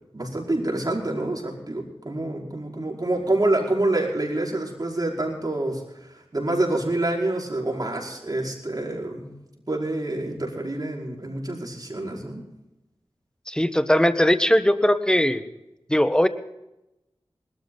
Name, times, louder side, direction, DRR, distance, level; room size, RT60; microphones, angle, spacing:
voice 1, 0.1-5.8 6.1-9.3 9.7-12.4, right 2 dB, 40° right, -1 dB, 5.1 m, -27 dB
voice 2, 13.5-15.4 15.9-16.3, equal, 10° left, 10 dB, 1.3 m, -19 dB
20.5 x 13.0 x 4.0 m, 0.91 s
wide cardioid pair, 40°, 10 cm